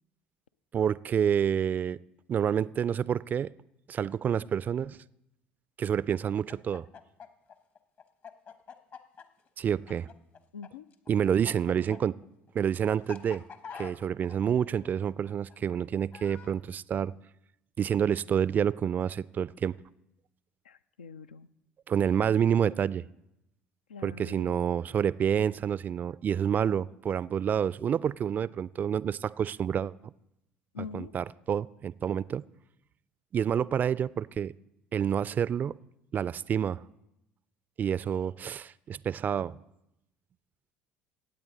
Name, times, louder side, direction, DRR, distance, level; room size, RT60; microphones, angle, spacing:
voice 1, 0.7-2.0 2.3-3.5 3.9-5.0 5.8-6.9 9.6-10.1 11.1-12.2 12.5-13.4 13.8-17.1 17.8-19.8 21.9-23.0 24.0-29.9 30.9-32.4 33.3-34.5 34.9-35.8 36.1-36.8 37.8-39.6, right 8 dB, 35° right, 20 dB, 0.3 m, -28 dB
Chicken rooster, 6.3-10.7 10.9-16.6, left 6 dB, 45° left, 1.1 m, -46 dB
voice 2, 10.5-10.9 20.7-21.5 23.9-24.7 30.7-31.1, left 6 dB, 80° left, 13 dB, 0.4 m, -44 dB
16.5 x 8.8 x 3.8 m, 0.83 s
figure-of-eight pair, 60°, 5 cm